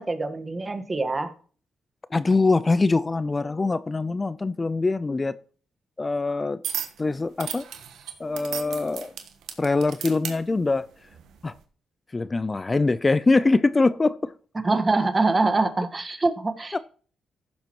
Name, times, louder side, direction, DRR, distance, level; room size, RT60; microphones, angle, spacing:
voice 1, 0.0-1.3 14.6-16.8, right 3 dB, 30° right, 1.4 m, -24 dB
voice 2, 2.1-5.3 6.0-6.6 7.0-7.7 8.2-9.1 9.6-10.9 11.4-11.5 12.1-14.3 16.7-16.8, left 3 dB, 30° left, 0.4 m, -23 dB
sound 1, 6.6-7.0 7.4-10.4 11.1-11.4, right 9 dB, 85° right, 1.3 m, -34 dB
15.0 x 7.2 x 3.0 m
cardioid pair, 65°, 0 cm